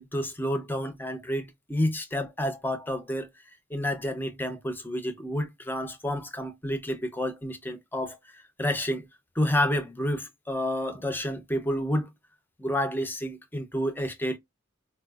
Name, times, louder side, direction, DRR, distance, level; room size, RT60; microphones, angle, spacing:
voice 1, 0.0-3.3 3.7-9.1 9.4-12.1 12.6-14.4, left 1 dB, 10° left, 0.5 m, -30 dB
4.1 x 2.3 x 2.3 m
head